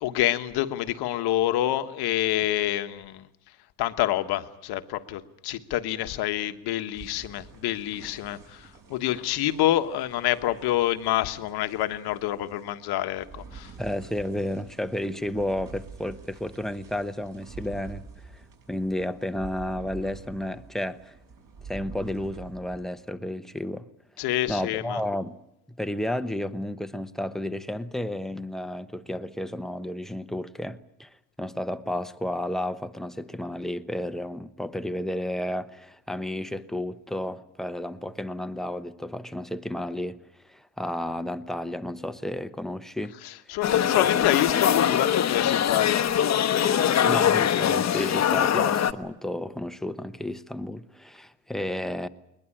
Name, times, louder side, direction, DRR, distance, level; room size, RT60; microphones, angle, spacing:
voice 1, 0.0-3.3 3.8-13.7 24.2-25.0 43.2-46.1, left 14 dB, 75° left, 1.4 m, -27 dB
sound 1, 6.9-22.9, right 5 dB, 50° right, 6.2 m, -47 dB
voice 2, 13.8-18.4 18.7-21.2 21.7-23.9 24.5-25.4 25.8-40.2 40.5-43.1 44.1-44.3 47.0-52.1, left 1 dB, ahead, 0.9 m, -32 dB
sound 2, 43.6-48.9, left 9 dB, 45° left, 1.0 m, -22 dB
21.5 x 21.0 x 8.8 m
cardioid pair, 120°, 39 cm